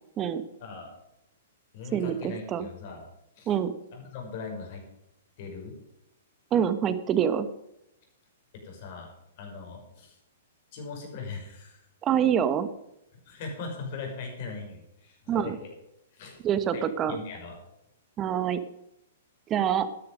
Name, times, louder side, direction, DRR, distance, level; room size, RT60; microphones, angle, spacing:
voice 1, 0.6-0.9 1.7-3.0 3.4-3.5 4.1-4.8 5.4-5.8 8.5-9.1 9.4-10.2 10.7-11.8 13.3-15.7 16.1-16.5 16.7-17.6, left 4 dB, 50° left, 2 dB, 5.7 m, -40 dB
voice 2, 1.9-2.7 3.5-3.7 6.5-7.5 12.0-12.7 15.3-15.6 16.4-17.2 18.2-18.6 19.5-19.9, right 9 dB, 25° right, 12 dB, 1.2 m, -26 dB
13.0 x 10.5 x 5.2 m, 0.84 s
hypercardioid pair, 115°, 0 cm